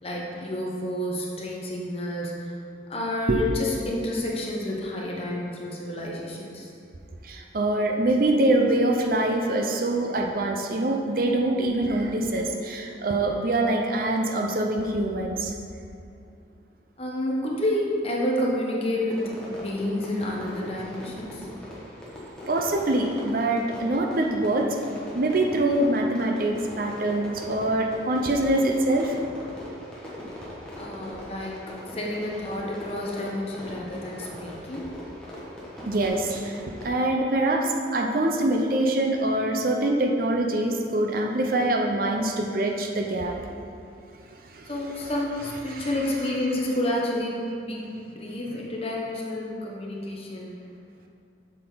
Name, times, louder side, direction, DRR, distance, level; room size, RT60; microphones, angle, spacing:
voice 1, 0.0-2.5 2.9-6.7 17.0-19.2 19.5-21.5 30.8-34.9 44.7-47.8 48.1-50.5, left 1 dB, 35° left, -3 dB, 1.1 m, -29 dB
voice 2, 7.2-15.5 22.5-24.8 25.1-29.1 35.9-43.5 44.5-44.7 45.7-45.9, right 1 dB, 55° right, 2 dB, 0.7 m, -24 dB
Fireworks, 19.1-37.0, left 1 dB, 5° left, 1.5 m, -40 dB
7.7 x 6.5 x 3.9 m, 2.6 s
head